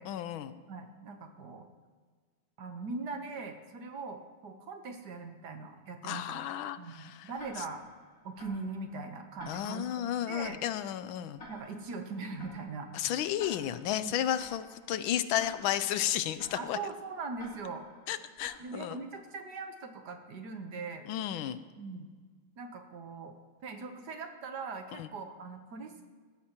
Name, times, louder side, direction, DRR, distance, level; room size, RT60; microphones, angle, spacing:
voice 1, 0.1-0.5 6.0-7.3 9.5-11.4 12.9-16.8 18.1-19.0 21.1-21.6 24.9-25.1, left 11 dB, 85° left, 13 dB, 1.4 m, -33 dB
voice 2, 0.7-1.7 2.6-6.5 6.8-7.8 8.2-10.6 11.5-13.1 14.0-14.2 16.6-17.9 18.6-21.1 21.8-22.1 22.6-23.3 23.6-26.1, right 4 dB, 60° right, 5 dB, 1.5 m, -41 dB
Tick-tock, 7.4-19.2, left 1 dB, 45° left, 3.4 m, -54 dB
18.5 x 14.5 x 3.0 m, 1.5 s
omnidirectional pair, 2.2 m